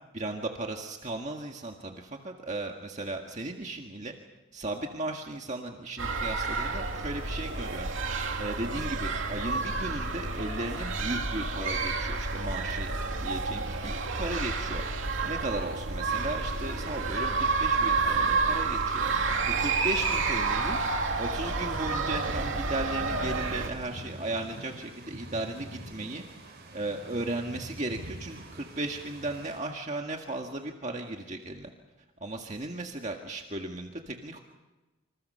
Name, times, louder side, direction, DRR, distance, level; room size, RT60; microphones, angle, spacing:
voice 1, 0.1-4.1 4.5-8.1 8.4-14.8 15.2-19.0 19.4-20.8 21.2-26.2 26.7-31.7 32.2-34.4, right 2 dB, 35° right, 2 dB, 1.8 m, -36 dB
sound 1, 6.0-23.7, right 4 dB, 65° right, 2.8 m, -30 dB
sound 2, 16.4-29.6, right 1 dB, 50° right, 7.4 m, -46 dB
28.0 x 27.0 x 5.7 m, 1.1 s
head